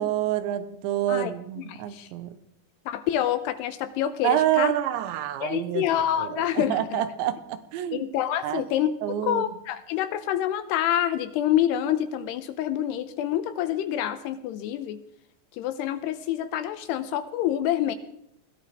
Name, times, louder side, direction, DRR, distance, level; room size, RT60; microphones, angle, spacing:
voice 1, 0.0-2.4 4.2-5.9 6.2-8.1 8.4-8.7 9.0-9.5, right 12 dB, 85° right, 10 dB, 3.2 m, -27 dB
voice 2, 1.7-2.1 2.9-4.7 5.4-7.0 7.9-15.0 15.5-18.0, left 11 dB, 80° left, 11 dB, 2.6 m, -27 dB
21.5 x 17.0 x 3.5 m, 0.74 s
omnidirectional pair, 5.2 m